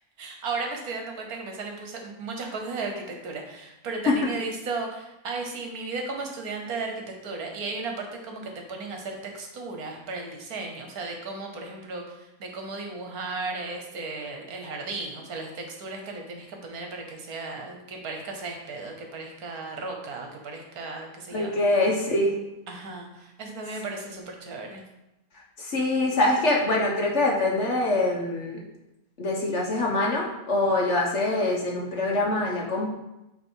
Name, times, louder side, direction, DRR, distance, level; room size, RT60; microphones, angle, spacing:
voice 1, 0.2-21.5 22.7-24.8, right 3 dB, 65° right, 2 dB, 1.4 m, -35 dB
voice 2, 21.3-22.4 25.6-28.6 29.2-32.9, left 2 dB, 50° left, -1 dB, 1.2 m, -24 dB
8.3 x 3.3 x 4.6 m, 0.92 s
omnidirectional pair, 1.7 m